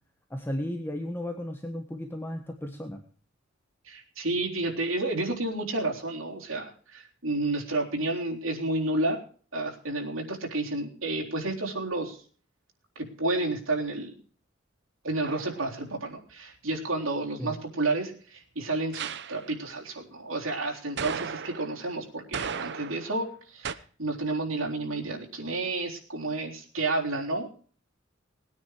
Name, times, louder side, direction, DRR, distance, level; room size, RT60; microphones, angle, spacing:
voice 1, 0.3-3.0 17.4-17.5, left 1 dB, 10° left, 3 dB, 1.3 m, -34 dB
voice 2, 3.8-9.2 9.5-12.2 13.0-14.2 15.0-27.5, right 2 dB, 85° right, -1 dB, 3.9 m, -31 dB
sound 1, 15.2-15.7 18.9-19.5 21.0-21.8 22.3-23.2 23.6-23.7, right 6 dB, 60° right, 0.8 m, -35 dB
20.0 x 9.7 x 4.9 m, 0.43 s
head